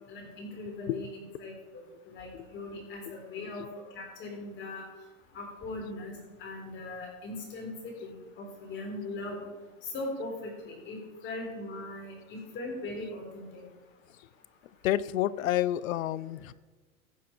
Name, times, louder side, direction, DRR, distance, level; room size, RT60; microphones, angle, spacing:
voice 1, 0.1-1.1 1.4-3.7 3.9-4.9 5.3-9.5 9.8-11.0 11.2-13.6, left 2 dB, 30° left, 1 dB, 3.9 m, -40 dB
voice 2, 14.8-16.5, left 13 dB, 80° left, 19 dB, 0.6 m, -29 dB
15.0 x 8.8 x 4.4 m, 1.3 s
supercardioid pair, 140°, 40 cm